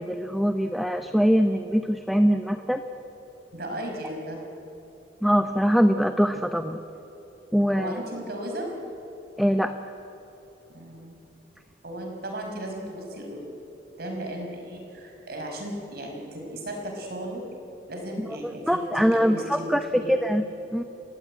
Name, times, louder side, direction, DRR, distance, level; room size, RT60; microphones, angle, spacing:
voice 1, 0.0-2.8 5.2-6.8 7.5-8.0 9.4-9.7 18.7-20.4 20.7-20.8, equal, ahead, 7 dB, 0.7 m, -23 dB
voice 2, 3.5-4.4 7.8-8.7 10.7-11.2 11.8-13.4 14.0-17.4 17.9-19.8 20.0-20.1, right 1 dB, 60° right, 2 dB, 5.1 m, -35 dB
29.5 x 16.0 x 9.7 m, 3.0 s
head